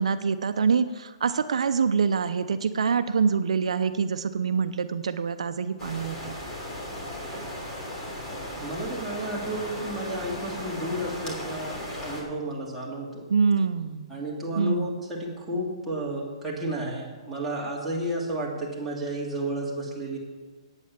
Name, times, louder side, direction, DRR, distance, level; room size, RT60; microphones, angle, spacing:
voice 1, 0.0-6.4 13.3-14.1 14.6-14.9, right 5 dB, 80° right, 11 dB, 0.6 m, -25 dB
sound 1, 5.8-12.2, left 1 dB, 15° left, 3.2 m, -36 dB
voice 2, 8.6-13.3 14.1-20.2, right 1 dB, 5° right, -6 dB, 2.6 m, -32 dB
9.3 x 8.8 x 7.3 m, 1.4 s
hypercardioid pair, 155°, 3 cm